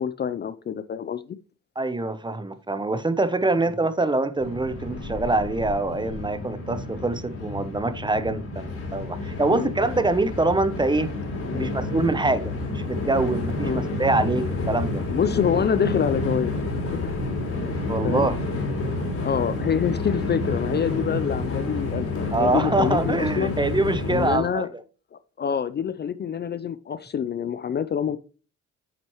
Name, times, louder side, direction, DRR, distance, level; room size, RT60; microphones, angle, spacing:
voice 1, 0.0-1.4 9.5-9.7 11.5-11.7 13.6-13.8 15.1-16.5 16.9-17.2 18.0-18.3 19.2-23.5 24.1-24.7 25.1-28.2, left 8 dB, 35° left, 0.4 m, -26 dB
voice 2, 1.8-11.1 11.5-15.0 17.9-18.4 22.3-24.6, right 2 dB, 15° right, 0.6 m, -24 dB
Train, 4.4-24.4, left 2 dB, 50° left, 3.2 m, -29 dB
9.0 x 6.1 x 3.0 m
cardioid pair, 90°, 30 cm